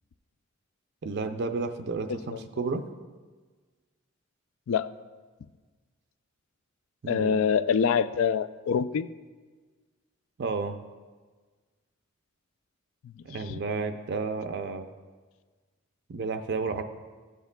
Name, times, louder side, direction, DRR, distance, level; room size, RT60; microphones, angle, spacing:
voice 1, 1.0-2.8 7.0-7.4 10.4-10.8 13.2-14.9 16.1-16.8, right 4 dB, 55° right, 7 dB, 0.4 m, -31 dB
voice 2, 7.1-9.1 13.0-13.1, left 6 dB, 85° left, 14 dB, 0.3 m, -25 dB
13.5 x 8.0 x 2.2 m, 1.4 s
head